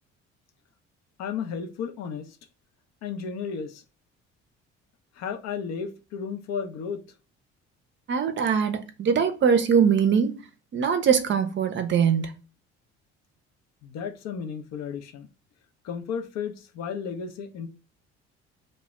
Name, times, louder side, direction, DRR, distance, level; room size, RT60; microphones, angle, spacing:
voice 1, 1.2-2.4 3.0-3.8 5.2-7.0 13.8-15.3 15.8-17.7, left 6 dB, 55° left, 0.5 m, -33 dB
voice 2, 8.1-10.4 10.7-12.3, right 7 dB, 40° right, 0.5 m, -22 dB
2.1 x 2.0 x 3.4 m
hypercardioid pair, 60°, 31 cm